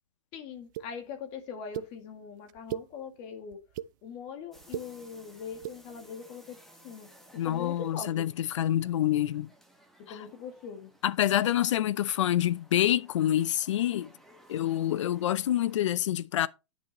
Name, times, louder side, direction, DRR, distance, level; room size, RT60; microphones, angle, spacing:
voice 1, 0.3-3.6 4.0-8.3 10.0-10.9, left 6 dB, 30° left, 2.2 m, -42 dB
sound 1, 0.7-0.9 1.7-1.9 2.5-2.9 3.5-3.9 4.5-4.9 5.5-5.8, right 12 dB, 40° right, 0.5 m, -35 dB
sound 2, 4.5-15.8, right 1 dB, ahead, 1.4 m, -59 dB
voice 2, 7.4-9.5 10.1-10.2 11.0-14.1 14.5-16.5, left 12 dB, 75° left, 0.6 m, -27 dB
10.0 x 8.8 x 3.0 m
hypercardioid pair, 160°, 16 cm